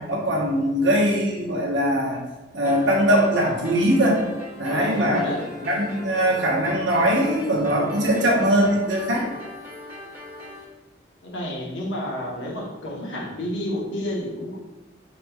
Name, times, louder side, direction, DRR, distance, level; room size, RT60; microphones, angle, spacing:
voice 1, 0.1-2.2 2.5-4.2 4.6-5.2 5.6-9.3, equal, 75° right, -1 dB, 0.9 m, -21 dB
sound 1, 2.6-10.6, left 1 dB, 10° right, 1.0 m, -39 dB
voice 2, 4.6-5.4 11.2-14.6, left 1 dB, 75° left, -2 dB, 0.9 m, -30 dB
5.1 x 2.9 x 2.3 m, 1.1 s
head